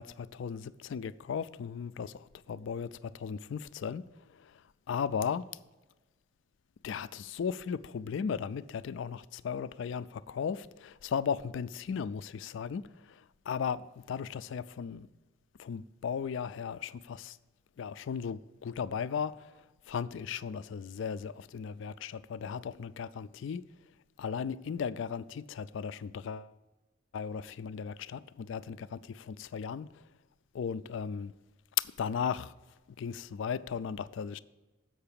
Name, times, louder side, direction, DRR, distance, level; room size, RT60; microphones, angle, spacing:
voice 1, 0.0-4.0 4.4-4.5 4.9-5.4 6.8-13.2 13.5-15.1 15.6-17.4 17.8-19.4 19.9-23.6 24.2-26.5 27.1-29.9 30.5-31.3 31.8-32.5 33.0-34.4, left 7 dB, 60° left, 0.3 m, -36 dB
7.9 x 5.7 x 6.8 m
head